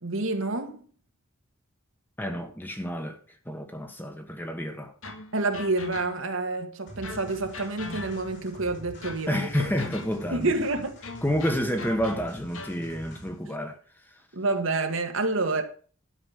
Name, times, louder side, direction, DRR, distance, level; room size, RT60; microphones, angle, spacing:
voice 1, 0.0-0.8 5.3-9.5 10.3-11.0 13.4-13.6 14.3-15.6, right 3 dB, 75° right, 1.7 m, -28 dB
voice 2, 2.2-3.2 3.5-4.9 9.3-10.5 11.2-13.8, equal, 10° left, 1.3 m, -29 dB
sound 1, 5.0-6.4 7.0-8.5 9.0-10.4 11.0-12.9, left 3 dB, 85° left, 1.9 m, -41 dB
sound 2, 6.9-13.5, right 1 dB, 55° left, 4.1 m, -46 dB
12.0 x 6.0 x 6.5 m
head